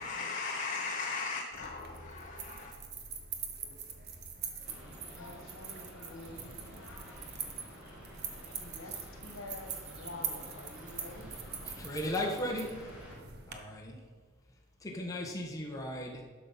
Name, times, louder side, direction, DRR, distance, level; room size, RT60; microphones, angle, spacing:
voice 1, 0.0-2.7, left 4 dB, 40° left, 0.9 m, -37 dB
sound 1, 1.5-13.5, right 6 dB, 50° right, 1.1 m, -43 dB
sound 2, 4.6-13.1, equal, 5° right, 3.2 m, -52 dB
voice 2, 5.1-8.0 8.3-11.3 11.6-12.0, left 2 dB, 75° left, 1.5 m, -49 dB
voice 3, 11.6-12.9 13.5-14.0 14.8-16.2, left 1 dB, 15° left, 1.5 m, -36 dB
12.0 x 6.1 x 5.7 m
head